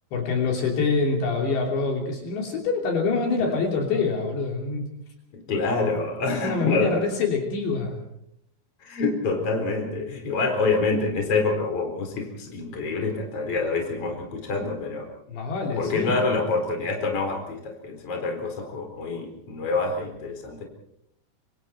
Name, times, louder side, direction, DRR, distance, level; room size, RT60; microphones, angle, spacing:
voice 1, 0.1-4.9 6.4-8.0 15.3-16.1, left 4 dB, 60° left, 1 dB, 5.0 m, -25 dB
voice 2, 5.3-7.0 8.8-15.1 15.8-20.6, left 3 dB, 30° left, 3 dB, 4.7 m, -26 dB
26.0 x 25.5 x 4.4 m, 0.75 s
omnidirectional pair, 5.8 m